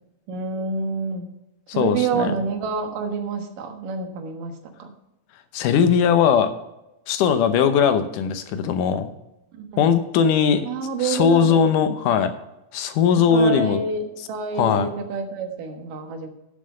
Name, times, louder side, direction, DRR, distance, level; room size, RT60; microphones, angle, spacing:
voice 1, 0.3-1.3 1.7-4.9 9.5-9.9 10.6-11.6 13.3-16.3, right 5 dB, 85° right, 6 dB, 3.0 m, -28 dB
voice 2, 1.8-2.3 5.5-6.5 7.1-9.1 9.8-10.7 11.0-12.3 12.7-13.8 14.6-14.9, left 7 dB, 80° left, 10 dB, 2.4 m, -19 dB
11.0 x 7.5 x 5.4 m, 0.93 s
omnidirectional pair, 3.7 m